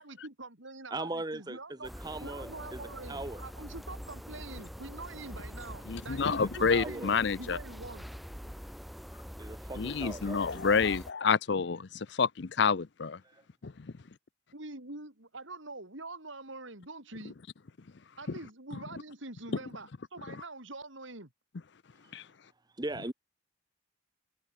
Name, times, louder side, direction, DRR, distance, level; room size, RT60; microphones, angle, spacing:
voice 1, 0.0-1.9 2.2-7.1 7.4-8.0 14.5-17.3 18.2-21.3, right 2 dB, 70° right, 4.4 m, -45 dB
voice 2, 0.9-2.8 3.1-3.4 6.4-7.1 9.4-10.7 13.2-13.4 22.8-23.1, right 2 dB, 20° right, 1.1 m, -39 dB
sound 1, 1.8-11.1, equal, ahead, 1.5 m, -44 dB
voice 3, 5.9-7.6 9.8-11.9 12.2-13.2 13.6-13.7 20.3-20.4 22.1-22.2, left 5 dB, 60° left, 0.6 m, -28 dB
head